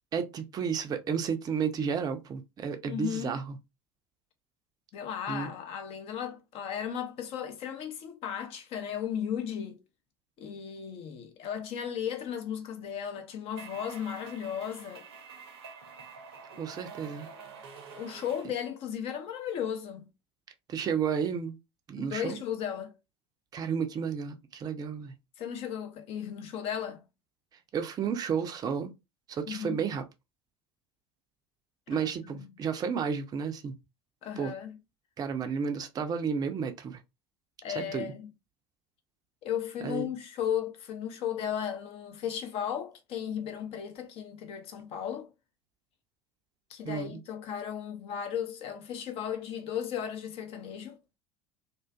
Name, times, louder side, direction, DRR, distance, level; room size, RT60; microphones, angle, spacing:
voice 1, 0.1-3.4 5.3-5.5 16.6-17.3 20.7-21.6 21.9-22.4 23.5-25.1 27.7-28.9 29.3-30.0 31.9-33.7 34.4-34.5 35.2-37.0 37.8-38.1 39.8-40.1 46.9-47.2, right 6 dB, 30° right, 0.4 m, -32 dB
voice 2, 2.9-3.4 4.9-9.8 10.4-15.1 18.0-20.1 22.0-22.9 25.4-27.0 29.5-29.8 31.9-32.5 34.2-34.8 37.6-38.3 39.4-45.3 46.7-51.0, left 9 dB, 45° left, 0.5 m, -35 dB
sound 1, 13.6-18.5, right 5 dB, 70° right, 0.7 m, -47 dB
2.4 x 2.3 x 2.3 m
figure-of-eight pair, 65°, 14 cm